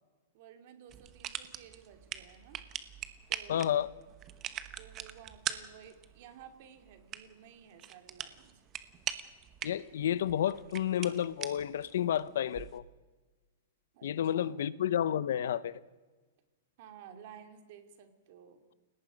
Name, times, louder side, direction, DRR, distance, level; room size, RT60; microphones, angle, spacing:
voice 1, 0.3-2.6 3.3-3.8 4.8-8.6 13.9-14.6 16.8-18.6, right 8 dB, 40° right, 2.6 m, -54 dB
sound 1, 0.9-12.8, right 11 dB, 20° right, 1.0 m, -43 dB
voice 2, 3.5-3.9 9.6-12.8 14.0-15.8, left 10 dB, 65° left, 0.8 m, -31 dB
29.5 x 18.0 x 5.3 m
supercardioid pair, 175°, 0 cm